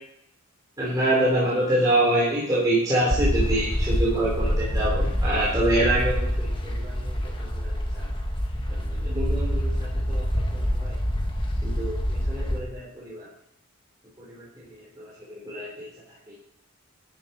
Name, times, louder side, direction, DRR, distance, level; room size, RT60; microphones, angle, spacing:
voice 1, 0.8-8.1 8.7-10.9 11.6-12.0 12.3-13.2 14.2-14.4 15.0-15.7 16.3-16.4, right 1 dB, 20° right, -7 dB, 3.5 m, -26 dB
sound 1, 3.1-12.6, equal, 25° left, 1.6 m, -26 dB
12.5 x 9.7 x 4.3 m, 0.73 s
head